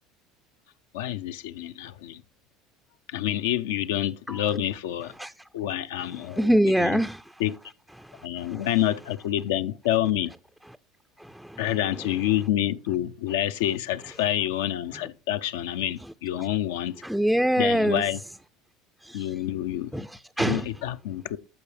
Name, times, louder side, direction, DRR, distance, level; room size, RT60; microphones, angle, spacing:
voice 1, 0.9-2.2 3.1-5.1 5.5-7.0 7.4-7.5 8.2-10.3 11.6-16.9 17.6-18.2 19.1-20.1 20.4-21.4, left 12 dB, 85° left, 0.4 m, -28 dB
voice 2, 6.2-7.2 8.0-8.7 11.2-11.7 17.0-18.0 19.0-19.4 19.9-20.7, equal, ahead, 0.3 m, -25 dB
14.0 x 4.7 x 3.3 m
supercardioid pair, 100°, 0 cm